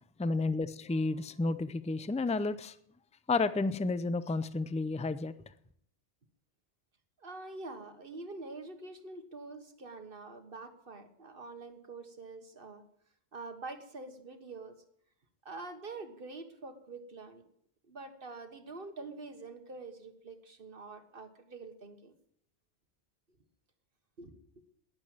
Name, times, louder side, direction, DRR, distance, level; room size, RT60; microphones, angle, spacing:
voice 1, 0.0-2.8 3.3-5.3, left 3 dB, 10° left, 0.4 m, -31 dB
voice 2, 7.2-12.8 13.3-14.7 15.4-17.4 17.9-22.1 24.2-24.3, right 3 dB, 55° right, 1.6 m, -46 dB
12.0 x 10.5 x 8.9 m
omnidirectional pair, 1.1 m